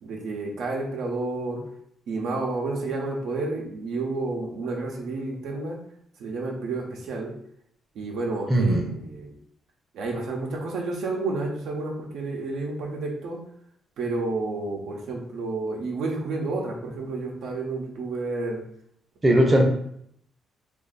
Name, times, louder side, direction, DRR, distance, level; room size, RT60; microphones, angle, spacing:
voice 1, 0.0-1.6 2.1-5.8 6.2-7.3 8.0-9.4 9.9-13.4 14.0-18.6, right 3 dB, 75° right, -1 dB, 0.8 m, -30 dB
voice 2, 8.5-8.8 19.2-19.6, right 1 dB, 25° right, 0 dB, 0.7 m, -18 dB
2.6 x 2.6 x 3.9 m, 0.70 s
cardioid pair, 90°, 0 cm